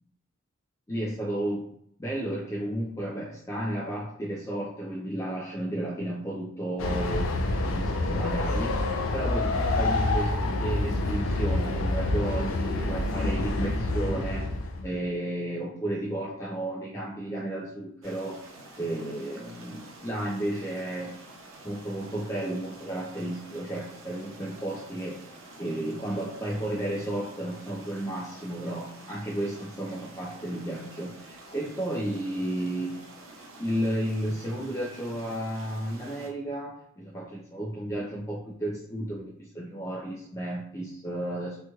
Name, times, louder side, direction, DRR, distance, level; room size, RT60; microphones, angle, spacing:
voice 1, 0.9-1.7 2.0-7.4 7.6-8.8 9.1-14.5 14.8-18.4 18.8-21.1 21.6-25.2 25.6-32.9 33.6-41.6, right 1 dB, 15° left, -5 dB, 0.5 m, -33 dB
Train, 6.8-14.9, left 2 dB, 85° left, 0.4 m, -27 dB
sound 1, 18.0-36.3, right 2 dB, 80° right, 0.6 m, -48 dB
2.9 x 2.9 x 2.3 m, 0.68 s
head